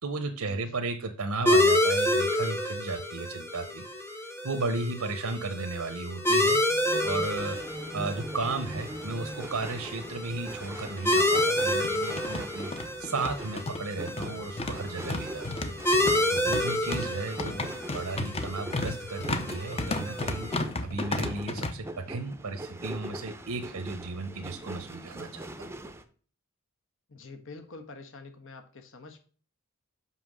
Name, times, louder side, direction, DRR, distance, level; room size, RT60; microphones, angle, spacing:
voice 1, 0.0-6.6 7.0-16.0 16.3-20.5 20.8-25.7, right 3 dB, 85° right, 8 dB, 0.9 m, -35 dB
sound 1, 1.5-20.6, left 1 dB, 10° left, 1.0 m, -29 dB
sound 2, 6.7-26.0, right 1 dB, 10° right, 0.6 m, -42 dB
sound 3, 9.7-9.8 10.0-10.1 11.0-21.7, left 2 dB, 30° left, 0.8 m, -34 dB
voice 2, 27.1-29.2, left 3 dB, 60° left, 7 dB, 1.3 m, -46 dB
5.8 x 5.7 x 6.2 m, 0.42 s
head